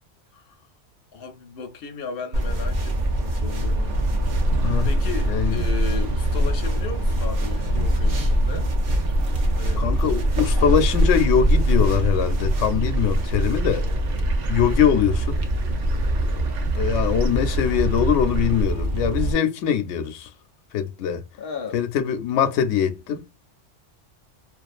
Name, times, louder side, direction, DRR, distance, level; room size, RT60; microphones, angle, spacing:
voice 1, 1.1-4.0 4.8-8.7 9.6-9.9 14.9-15.2 16.9-17.4 21.4-21.8, left 5 dB, 60° left, 0.7 m, -36 dB
sound 1, 2.3-19.3, right 1 dB, 60° right, 0.5 m, -24 dB
sound 2, 3.6-18.7, equal, 80° right, 1.0 m, -27 dB
voice 2, 9.8-13.8 14.5-15.4 16.7-20.3 20.7-21.2 21.7-23.3, left 8 dB, 85° left, 0.9 m, -22 dB
2.4 x 2.3 x 2.4 m
omnidirectional pair, 1.2 m